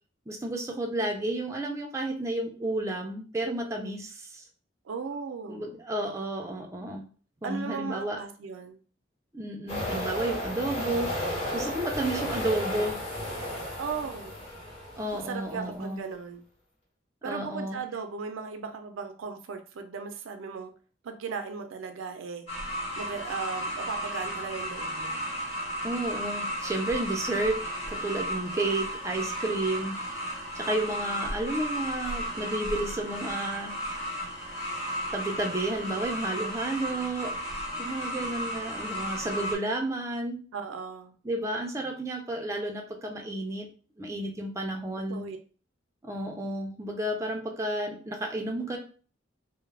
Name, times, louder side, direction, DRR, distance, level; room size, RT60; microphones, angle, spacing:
voice 1, 0.3-4.4 5.5-7.1 7.4-8.2 9.3-11.1 11.5-13.0 15.0-16.0 17.2-17.8 25.8-27.6 27.9-30.0 30.5-33.7 35.1-37.3 37.8-40.4 41.2-43.7 44.0-45.3 46.0-48.8, right 1 dB, 15° right, 1 dB, 0.3 m, -31 dB
voice 2, 4.8-5.8 7.4-8.8 12.0-12.4 13.8-14.4 15.1-16.4 17.2-20.7 21.0-22.5 23.0-25.2 40.5-41.2 45.0-45.4, right 5 dB, 85° right, 7 dB, 0.4 m, -37 dB
sound 1, 9.7-15.5, left 1 dB, 30° left, 0.9 m, -33 dB
sound 2, 22.5-39.6, equal, 65° left, 1.2 m, -34 dB
2.3 x 2.0 x 3.1 m, 0.39 s
head